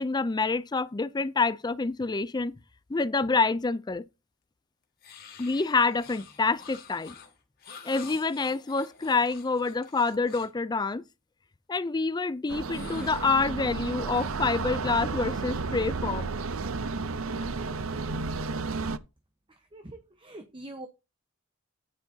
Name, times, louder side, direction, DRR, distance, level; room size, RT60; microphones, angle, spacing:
voice 1, 0.0-2.5 2.9-4.0 5.4-7.1 7.8-11.0 11.7-16.3, left 4 dB, 20° left, 0.4 m, -27 dB
sound 1, 5.0-10.6 12.7-13.9, left 6 dB, 50° left, 2.3 m, -49 dB
sound 2, 12.5-19.0, right 4 dB, 80° right, 0.7 m, -32 dB
voice 2, 19.7-20.9, right 1 dB, 25° right, 1.0 m, -43 dB
14.0 x 9.7 x 2.8 m
head